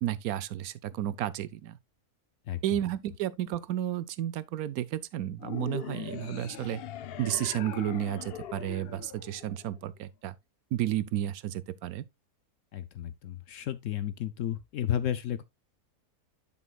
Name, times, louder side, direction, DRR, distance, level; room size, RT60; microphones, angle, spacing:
voice 1, 0.0-1.8 2.6-6.8 7.2-10.4 10.7-12.1, right 12 dB, 70° right, 1.0 m, -32 dB
sound 1, 5.4-9.9, left 10 dB, 85° left, 0.5 m, -41 dB
voice 2, 12.7-15.4, left 10 dB, 65° left, 0.9 m, -32 dB
11.0 x 6.0 x 2.3 m
omnidirectional pair, 1.7 m